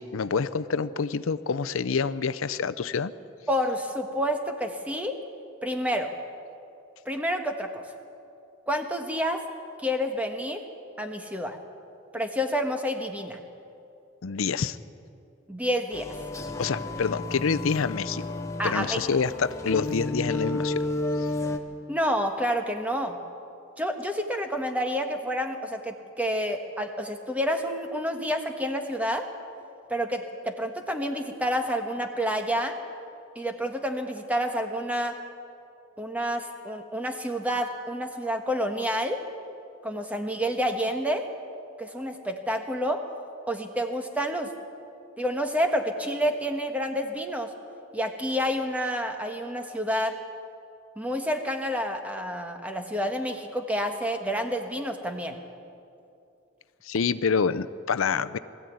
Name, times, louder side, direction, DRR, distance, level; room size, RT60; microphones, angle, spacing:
voice 1, 0.0-3.1 14.2-14.8 16.6-18.2 18.6-20.8 21.2-21.3 56.8-58.4, left 5 dB, 85° left, 14 dB, 0.6 m, -27 dB
voice 2, 3.5-5.2 5.6-6.1 7.0-7.8 8.7-9.4 9.8-10.6 11.0-11.6 12.1-13.4 15.5-16.1 18.6-19.0 21.9-23.2 23.8-29.2 29.9-32.7 33.3-35.1 36.0-39.2 39.8-41.2 41.8-43.0 43.5-44.5 45.2-47.5 47.9-50.1 51.0-55.4, equal, 5° right, 4 dB, 1.3 m, -29 dB
sound 1, 15.9-21.6, left 2 dB, 15° left, 1.1 m, -32 dB
20.5 x 14.0 x 9.3 m, 2.6 s
head